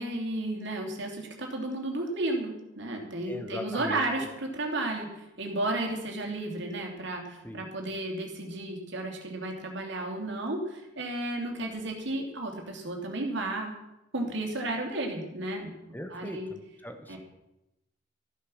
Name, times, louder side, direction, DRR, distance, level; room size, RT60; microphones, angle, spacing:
voice 1, 0.0-13.7 14.1-15.7 16.1-16.5 17.1-17.2, right 2 dB, 65° right, 2 dB, 2.9 m, -33 dB
voice 2, 3.3-4.3 7.4-7.6 15.9-17.2, left 1 dB, 10° left, 6 dB, 1.3 m, -40 dB
14.0 x 9.4 x 6.4 m, 0.91 s
head